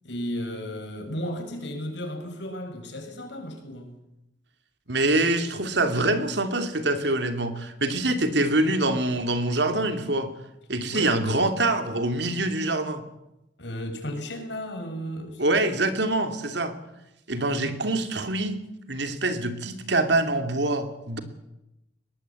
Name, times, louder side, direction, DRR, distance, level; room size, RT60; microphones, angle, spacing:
voice 1, 0.0-4.0 10.9-11.2 13.6-15.4 17.3-17.7, equal, 70° left, 4 dB, 6.5 m, -34 dB
voice 2, 4.9-10.3 10.7-13.0 15.4-16.7 17.3-18.6 18.9-21.2, right 2 dB, 65° right, 8 dB, 2.8 m, -25 dB
22.0 x 19.0 x 8.5 m, 0.87 s
head